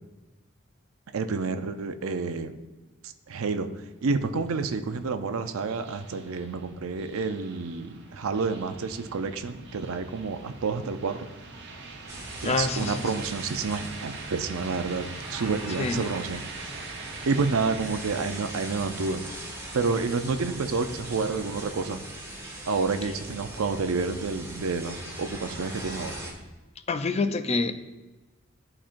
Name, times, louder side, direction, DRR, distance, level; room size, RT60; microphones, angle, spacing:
voice 1, 1.1-2.6 3.3-3.7 4.0-11.3 12.4-16.9 17.2-19.2 19.7-22.0 22.7-26.2, right 4 dB, 85° right, 9 dB, 0.5 m, -29 dB
sound 1, 3.7-22.7, right 3 dB, 55° right, 0.9 m, -44 dB
sound 2, 12.1-26.3, right 1 dB, 15° right, 1.1 m, -41 dB
voice 2, 12.4-13.1 15.8-16.1 26.9-27.7, left 3 dB, 30° left, 9 dB, 0.4 m, -27 dB
12.5 x 4.3 x 2.5 m, 1.1 s
head